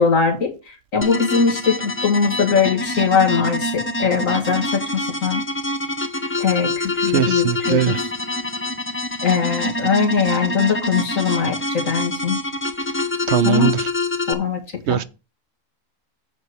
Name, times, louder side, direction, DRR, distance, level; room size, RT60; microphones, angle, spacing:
voice 1, 0.0-5.4 6.4-8.0 9.2-12.4 13.4-13.8 14.3-15.0, left 6 dB, 85° left, 2.3 m, -21 dB
sound 1, 1.0-14.3, left 2 dB, 15° left, 0.5 m, -26 dB
voice 2, 7.1-8.0 13.3-13.7 14.9-15.0, right 10 dB, 65° right, 0.8 m, -19 dB
8.2 x 4.5 x 6.5 m
omnidirectional pair, 1.4 m